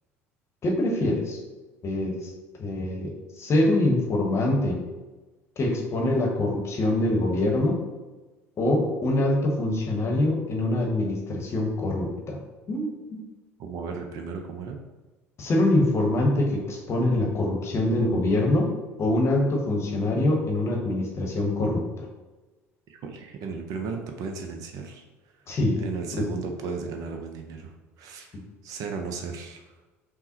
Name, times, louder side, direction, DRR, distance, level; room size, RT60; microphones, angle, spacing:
voice 1, 0.6-1.4 1.8-2.3 2.6-4.8 5.6-7.8 8.6-12.4 12.7-13.2 15.4-18.7 19.0-22.0 25.5-25.8 26.2-26.3 28.3-28.4, left 1 dB, 35° left, 0 dB, 0.9 m, -24 dB
voice 2, 13.6-14.8 22.9-25.0 25.8-28.3 28.6-29.6, right 5 dB, 50° right, 4 dB, 0.5 m, -35 dB
5.4 x 2.1 x 2.8 m, 1.2 s
figure-of-eight pair, 60°, 8 cm